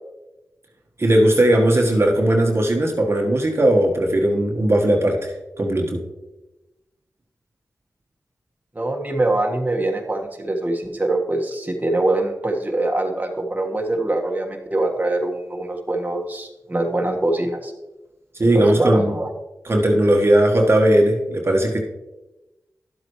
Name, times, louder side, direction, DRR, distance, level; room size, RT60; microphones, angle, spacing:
voice 1, 1.0-6.0 18.4-19.1 19.6-21.8, right 1 dB, 40° right, 1 dB, 1.4 m, -18 dB
voice 2, 8.7-17.7 18.4-19.3, right 2 dB, 25° right, 0 dB, 1.5 m, -23 dB
11.5 x 7.8 x 3.1 m, 0.99 s
cardioid pair, 45°, 6 cm